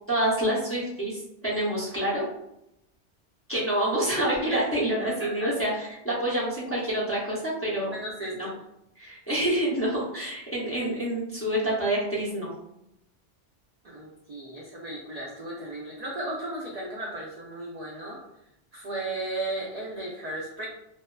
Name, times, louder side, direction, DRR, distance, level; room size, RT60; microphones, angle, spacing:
voice 1, 0.1-2.3 3.5-7.9 8.4-8.5 9.0-12.5, right 1 dB, 20° left, -7 dB, 0.4 m, -27 dB
voice 2, 5.0-5.5 7.9-8.5 13.8-18.2 18.7-20.7, right 1 dB, 80° right, -4 dB, 0.3 m, -35 dB
2.6 x 2.1 x 2.2 m, 0.83 s
omnidirectional pair, 1.2 m